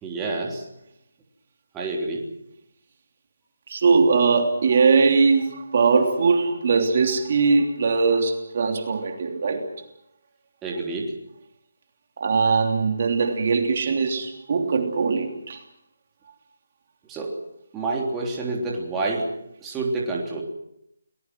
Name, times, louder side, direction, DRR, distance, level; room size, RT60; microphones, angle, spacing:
voice 1, 0.0-0.7 1.7-2.2 10.6-11.1 17.0-17.4 17.7-19.3 19.6-20.4, right 3 dB, 10° right, -2 dB, 3.4 m, -28 dB
voice 2, 3.7-9.6 12.2-15.6, right 4 dB, 45° right, 3 dB, 3.3 m, -21 dB
30.0 x 20.0 x 6.1 m, 0.79 s
figure-of-eight pair, 165°, 0 cm